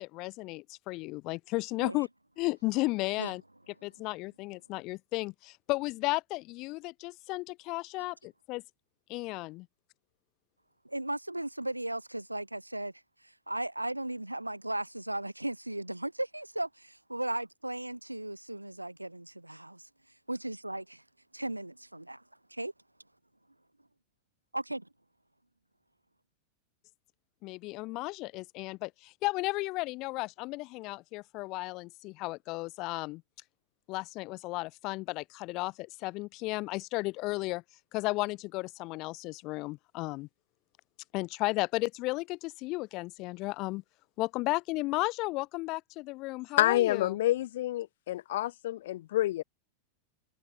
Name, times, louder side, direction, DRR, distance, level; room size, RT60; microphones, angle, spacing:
voice 1, 0.0-2.1 2.4-3.4 3.8-8.6 9.1-9.7 27.4-33.2 33.9-37.6 37.9-40.3 41.1-43.8 44.2-47.2, left 22 dB, 40° left, 2.3 m, -34 dB
voice 2, 10.9-12.9 13.5-19.8 20.3-21.0 21.3-22.2 22.5-22.7 24.5-24.9, right 1 dB, 85° right, 1.9 m, -36 dB
voice 3, 46.6-49.4, left 14 dB, 55° left, 2.6 m, -28 dB
figure-of-eight pair, 90°, 0 cm